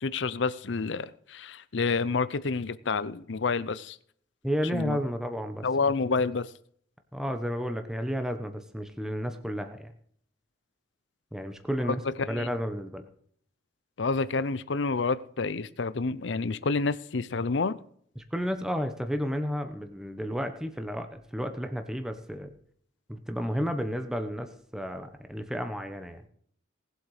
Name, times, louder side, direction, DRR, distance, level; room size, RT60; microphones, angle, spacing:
voice 1, 0.0-4.0 4.7-5.0 5.6-6.5 11.9-12.5 14.0-17.8, left 4 dB, 65° left, 16 dB, 0.6 m, -29 dB
voice 2, 4.4-5.7 6.1-6.2 7.1-9.9 11.3-12.0 12.3-13.0 18.2-22.5 23.1-26.3, equal, 5° right, 7 dB, 1.0 m, -32 dB
19.0 x 7.9 x 4.9 m, 0.62 s
head